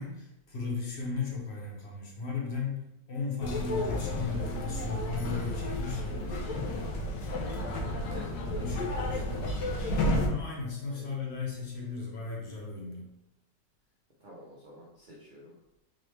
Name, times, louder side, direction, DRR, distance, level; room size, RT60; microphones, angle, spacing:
voice 1, 0.0-6.2 8.4-9.5 10.2-13.1, left 4 dB, 50° left, -2 dB, 0.9 m, -36 dB
sound 1, 3.4-10.3, left 1 dB, 80° left, 1.3 m, -32 dB
voice 2, 8.1-9.5 10.9-11.1 14.2-15.5, equal, 75° right, -5 dB, 0.4 m, -49 dB
3.9 x 3.1 x 3.2 m, 0.89 s
omnidirectional pair, 1.9 m